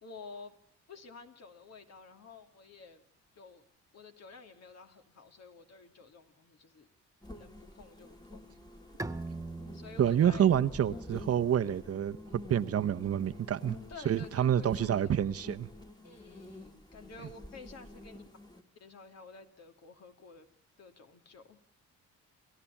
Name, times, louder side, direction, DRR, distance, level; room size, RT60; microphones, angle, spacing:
voice 1, 0.0-0.6 0.9-3.0 3.4-3.7 3.9-6.9 7.3-8.6 9.7-10.5 11.1-11.2 13.9-15.2 16.0-18.2 18.8-20.5 20.8-21.6, left 4 dB, 60° left, 2.7 m, -51 dB
sound 1, 7.2-18.6, left 1 dB, 15° left, 1.9 m, -49 dB
Bowed string instrument, 9.0-12.5, right 2 dB, 10° right, 0.9 m, -44 dB
voice 2, 10.0-13.8 14.0-15.7, right 9 dB, 50° right, 0.9 m, -28 dB
28.5 x 14.0 x 7.2 m
cardioid pair, 90°, 30 cm